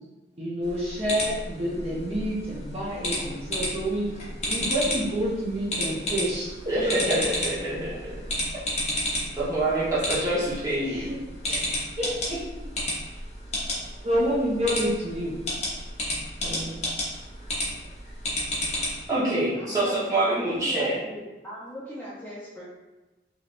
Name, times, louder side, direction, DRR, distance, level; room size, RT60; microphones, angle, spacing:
voice 1, 0.4-4.1 4.5-6.5 10.8-11.2 11.4-11.6 12.0-12.4 14.0-15.3 19.1-19.5, equal, 35° right, -6 dB, 0.6 m, -28 dB
sound 1, 0.6-19.1, left 1 dB, 35° left, 0.8 m, -32 dB
voice 2, 6.7-8.2 9.4-11.1 16.4-16.8 19.1-21.0, right 1 dB, 20° right, -9 dB, 0.9 m, -26 dB
voice 3, 19.6-19.9 20.2-22.6, equal, 10° left, -8 dB, 0.5 m, -39 dB
3.2 x 2.6 x 2.5 m, 1.1 s
head